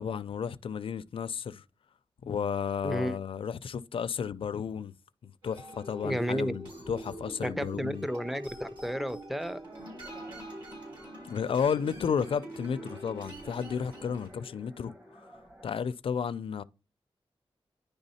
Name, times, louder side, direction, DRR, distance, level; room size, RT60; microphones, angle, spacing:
voice 1, 0.0-1.6 2.2-4.9 5.2-8.1 11.3-15.3 15.6-16.6, left 7 dB, 65° left, 0.4 m, -33 dB
voice 2, 2.8-3.2 6.0-6.6 7.4-9.6, equal, ahead, 0.4 m, -32 dB
sound 1, 5.4-14.3, right 1 dB, 55° right, 3.7 m, -45 dB
sound 2, 9.6-15.8, equal, 25° right, 1.0 m, -52 dB
9.8 x 3.4 x 4.1 m
wide cardioid pair, 180°, 10 cm